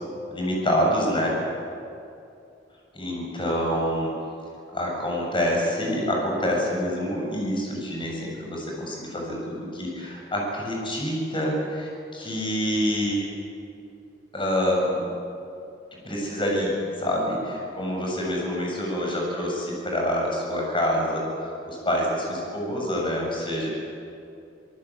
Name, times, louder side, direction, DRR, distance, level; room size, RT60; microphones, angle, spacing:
voice 1, 0.3-1.4 2.9-4.1 4.7-13.3 14.3-15.0 16.0-23.7, equal, 30° left, -1 dB, 7.3 m, -26 dB
26.0 x 19.0 x 8.7 m, 2.6 s
head